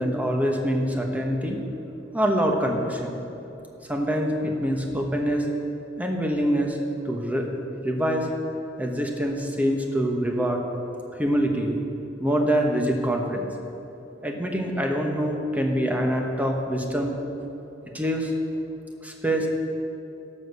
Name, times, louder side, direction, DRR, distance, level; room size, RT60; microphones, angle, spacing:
voice 1, 0.0-1.6 2.1-3.2 3.9-5.4 6.0-6.8 7.0-7.5 7.8-8.3 8.8-10.6 11.2-11.8 12.2-13.5 14.2-17.1 17.9-18.3 19.0-19.5, equal, 10° right, 2 dB, 1.0 m, -25 dB
11.5 x 6.5 x 6.8 m, 2.9 s
head